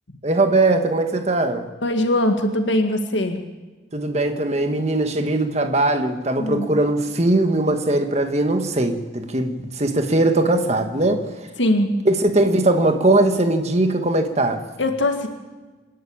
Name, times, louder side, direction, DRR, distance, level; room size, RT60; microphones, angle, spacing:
voice 1, 0.2-1.7 3.9-11.3 12.0-14.6, right 2 dB, 35° right, 1.6 m, -20 dB
voice 2, 1.8-3.4 6.4-6.7 11.6-12.0 14.8-15.3, left 1 dB, 80° left, 2.0 m, -21 dB
27.0 x 11.0 x 8.8 m
head